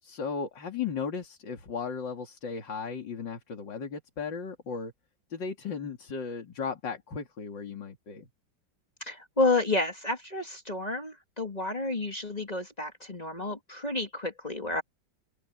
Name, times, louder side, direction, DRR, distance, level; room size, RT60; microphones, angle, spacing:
voice 1, 0.0-4.9 5.3-8.3, left 5 dB, 65° left, 3.2 m, -36 dB
voice 2, 9.0-14.8, left 2 dB, 20° left, 2.7 m, -30 dB
omnidirectional pair, 2.1 m